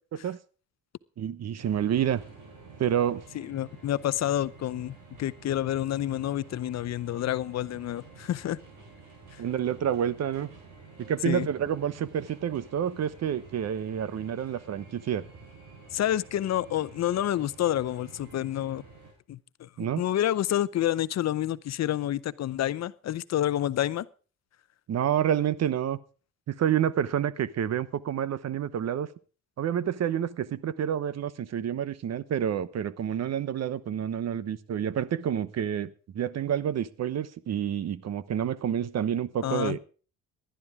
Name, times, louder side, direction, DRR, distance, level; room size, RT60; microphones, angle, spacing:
voice 1, 1.2-2.2 2.8-3.2 9.4-10.5 11.0-15.2 19.8-20.0 24.9-26.0 26.5-29.1 29.6-39.8, right 9 dB, 60° right, 1.0 m, -28 dB
sound 1, 1.6-19.1, right 4 dB, 80° right, 6.9 m, -50 dB
voice 2, 3.3-8.6 9.3-9.4 11.2-11.5 15.9-18.8 19.3-24.1 39.4-39.8, left 12 dB, 60° left, 0.7 m, -29 dB
19.0 x 11.5 x 3.6 m
cardioid pair, 90°, 30 cm